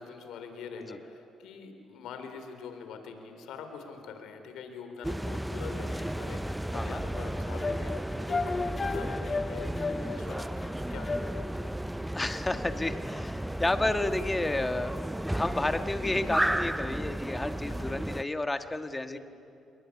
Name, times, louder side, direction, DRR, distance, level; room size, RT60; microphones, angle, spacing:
voice 1, 0.0-11.5 19.1-19.2, left 5 dB, 85° left, 7 dB, 3.7 m, -44 dB
sound 1, 5.0-18.2, right 1 dB, 5° right, 0.6 m, -33 dB
sound 2, 7.1-11.7, left 4 dB, 30° left, 1.5 m, -34 dB
voice 2, 12.1-15.0 15.3-19.2, left 2 dB, 15° left, 8 dB, 1.7 m, -31 dB
27.5 x 22.0 x 9.8 m, 2.7 s
cardioid pair, 90°, 0 cm